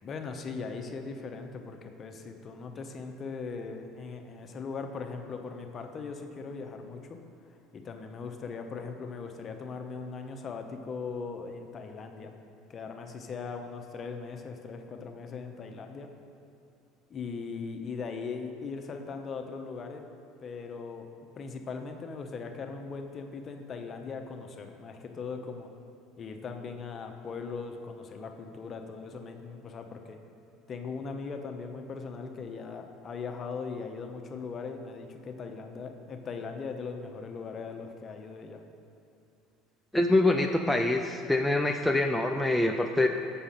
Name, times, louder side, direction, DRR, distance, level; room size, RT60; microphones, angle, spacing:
voice 1, 0.0-7.2 7.7-12.3 12.7-16.1 17.1-20.1 20.4-21.1 21.3-25.7 26.2-30.2 30.7-38.6, left 4 dB, 35° left, 4 dB, 0.8 m, -39 dB
voice 2, 39.9-43.1, left 2 dB, 5° left, 2 dB, 0.4 m, -25 dB
6.9 x 6.2 x 5.7 m, 2.7 s
supercardioid pair, 105°, 0 cm